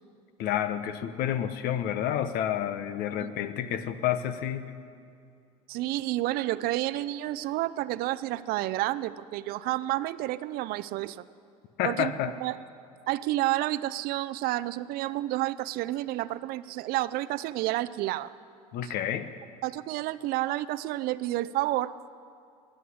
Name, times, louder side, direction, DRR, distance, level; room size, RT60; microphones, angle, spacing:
voice 1, 0.4-4.7 11.8-12.3 18.7-19.3, left 10 dB, 55° left, 12 dB, 1.1 m, -29 dB
voice 2, 5.7-11.2 11.9-12.1 12.4-12.6 13.1-18.3 18.8-18.9 19.6-21.9, right 16 dB, 55° right, 16 dB, 0.6 m, -30 dB
20.5 x 7.9 x 8.6 m, 2.4 s
hypercardioid pair, 80°, 18 cm